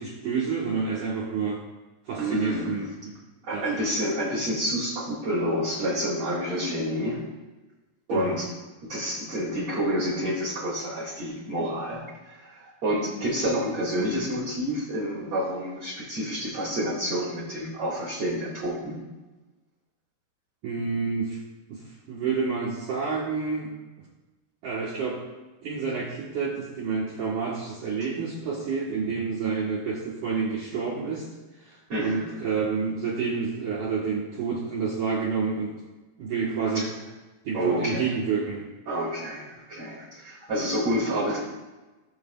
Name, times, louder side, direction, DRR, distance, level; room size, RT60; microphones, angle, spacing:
voice 1, 0.0-1.6 2.1-3.1 3.5-3.7 8.1-8.4 20.6-21.4 21.7-23.7 24.6-25.2 25.6-31.3 31.5-35.7 36.2-37.0 37.5-38.7, right 5 dB, 80° right, -4 dB, 1.8 m, -29 dB
voice 2, 2.2-2.8 3.4-7.2 8.1-8.5 8.9-19.0 31.9-32.3 36.7-36.8 37.5-38.1 38.9-41.4, equal, 45° right, -6 dB, 2.3 m, -29 dB
19.0 x 6.5 x 2.3 m, 1.2 s
omnidirectional pair, 5.5 m